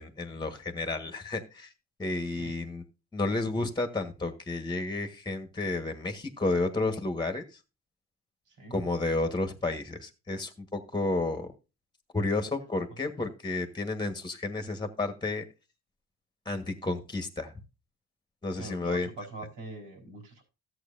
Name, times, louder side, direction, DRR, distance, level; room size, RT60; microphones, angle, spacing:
voice 1, 0.0-1.7 2.0-2.8 3.1-7.4 8.7-11.5 12.1-15.4 16.4-17.5 18.4-19.1, left 2 dB, 15° left, 8 dB, 1.5 m, -31 dB
voice 2, 18.6-20.4, right 2 dB, 80° right, 3 dB, 4.4 m, -43 dB
13.5 x 8.0 x 2.6 m, 0.29 s
cardioid pair, 90°, 30 cm